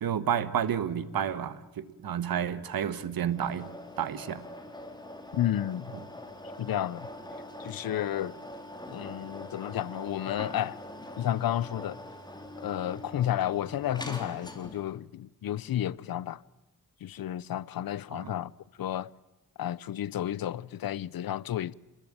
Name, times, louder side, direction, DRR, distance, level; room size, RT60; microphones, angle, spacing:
voice 1, 0.0-3.7 4.0-4.5 18.1-18.3, right 8 dB, 80° right, 1.7 m, -30 dB
sound 1, 3.3-15.0, left 1 dB, 10° left, 3.9 m, -43 dB
voice 2, 5.3-5.9 6.6-7.1 7.6-8.3 8.9-10.8 11.2-12.0 12.6-16.4 17.0-18.5 18.8-19.1 19.6-21.7, left 11 dB, 80° left, 0.8 m, -32 dB
28.5 x 20.5 x 8.9 m
wide cardioid pair, 110°, 35 cm